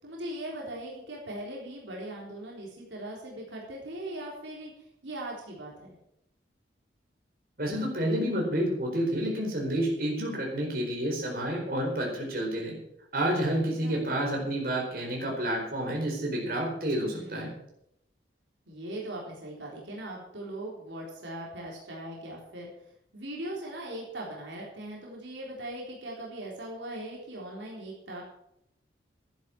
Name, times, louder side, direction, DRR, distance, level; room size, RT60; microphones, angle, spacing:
voice 1, 0.0-6.0 13.8-14.0 17.1-17.6 18.7-22.7 23.1-28.2, right 1 dB, 80° right, -2 dB, 3.8 m, -40 dB
voice 2, 7.6-12.7 13.1-17.5, right 1 dB, 50° right, -1 dB, 4.4 m, -29 dB
12.5 x 10.5 x 6.1 m, 0.78 s
head